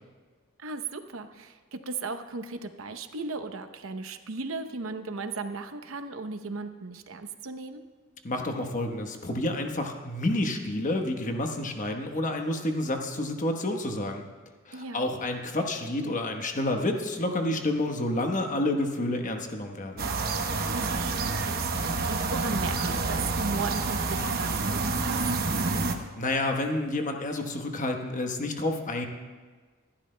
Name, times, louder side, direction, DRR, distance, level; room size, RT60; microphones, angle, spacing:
voice 1, 0.6-7.8 14.7-15.1 20.5-25.2, right 3 dB, 80° right, 9 dB, 0.8 m, -37 dB
voice 2, 8.2-14.2 14.7-20.1 26.2-29.1, left 1 dB, 40° left, 4 dB, 1.1 m, -29 dB
sound 1, 20.0-26.0, right 3 dB, 50° right, 0.9 m, -28 dB
25.0 x 11.5 x 2.2 m, 1.4 s
head